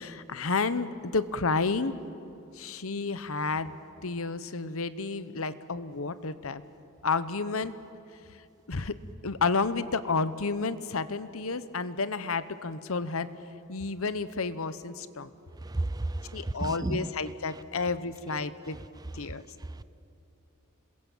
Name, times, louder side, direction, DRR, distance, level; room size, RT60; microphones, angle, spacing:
voice 1, 0.0-1.9 2.6-3.7 4.0-6.6 7.0-7.7 8.7-8.9 9.2-13.3 13.7-15.3 16.3-18.8 19.1-19.4, left 4 dB, 65° left, 1.0 m, -31 dB
voice 2, 15.6-17.1 17.5-17.6 18.7-19.3 19.6-19.8, right 2 dB, 15° right, 0.5 m, -34 dB
27.5 x 22.0 x 7.3 m
head